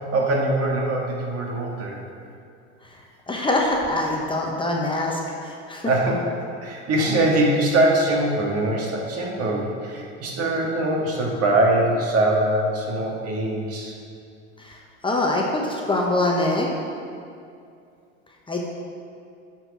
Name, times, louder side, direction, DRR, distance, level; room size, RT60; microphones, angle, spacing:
voice 1, 0.0-2.0 5.9-6.3 6.6-13.9, right 1 dB, 40° right, -1 dB, 1.8 m, -22 dB
voice 2, 3.3-5.9 14.6-14.7 15.0-16.7 18.5-18.7, left 2 dB, 15° left, -1 dB, 0.9 m, -24 dB
8.8 x 4.6 x 6.0 m, 2.4 s
hypercardioid pair, 95°, 36 cm